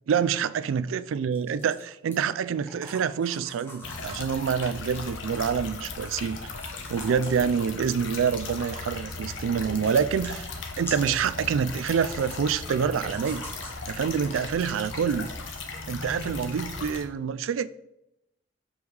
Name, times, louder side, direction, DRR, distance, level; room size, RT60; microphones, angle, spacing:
voice 1, 0.1-6.4 6.9-10.5 10.8-13.4 13.9-15.3 15.9-17.7, right 7 dB, 85° right, 0.3 m, -27 dB
sound 1, 1.3-2.2 2.7-5.1 5.9-7.5 8.2-9.0 9.2-11.3 11.8-12.5 13.1-13.8, left 1 dB, 10° left, 1.4 m, -44 dB
sound 2, 3.8-17.0, left 3 dB, 70° left, 0.9 m, -37 dB
6.1 x 5.2 x 3.3 m
head